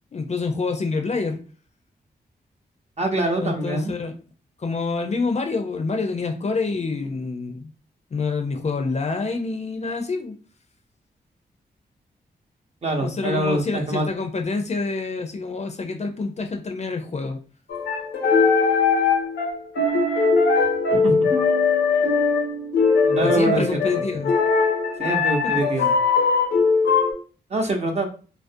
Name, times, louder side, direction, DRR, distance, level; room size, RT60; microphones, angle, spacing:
voice 1, 0.1-1.4 3.4-4.1 4.6-7.7 8.1-10.4 13.0-17.4 23.2-24.4 25.4-25.6, left 4 dB, 40° left, 5 dB, 0.4 m, -27 dB
voice 2, 3.0-3.9 12.8-14.1 21.0-21.3 23.0-23.6 23.9-24.0 25.0-25.9 27.5-28.1, right 1 dB, 40° right, 3 dB, 0.6 m, -24 dB
sound 1, 17.7-27.1, left 4 dB, 90° left, 0.6 m, -20 dB
2.4 x 2.0 x 2.6 m, 0.38 s
cardioid pair, 50°, 18 cm